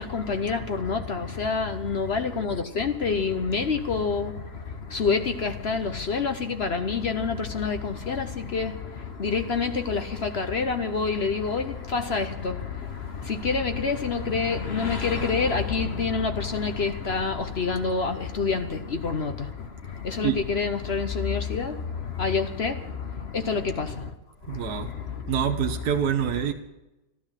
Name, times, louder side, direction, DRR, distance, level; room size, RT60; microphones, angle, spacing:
voice 1, 0.0-24.1 24.5-25.4, left 5 dB, 45° left, 0.9 m, -27 dB
voice 2, 24.5-24.9 25.3-26.5, right 9 dB, 65° right, 1.4 m, -26 dB
13.0 x 12.0 x 7.4 m
omnidirectional pair, 1.9 m